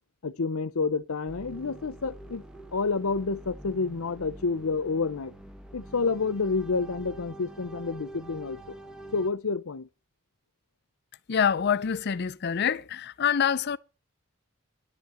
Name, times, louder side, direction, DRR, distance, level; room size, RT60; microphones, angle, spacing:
voice 1, 0.2-2.4 2.7-5.3 5.7-8.8 9.1-9.9, left 4 dB, 85° left, 0.7 m, -29 dB
sound 1, 1.3-9.3, right 1 dB, 5° right, 0.8 m, -46 dB
voice 2, 11.3-13.8, left 7 dB, 50° left, 0.5 m, -26 dB
10.5 x 5.7 x 7.7 m
head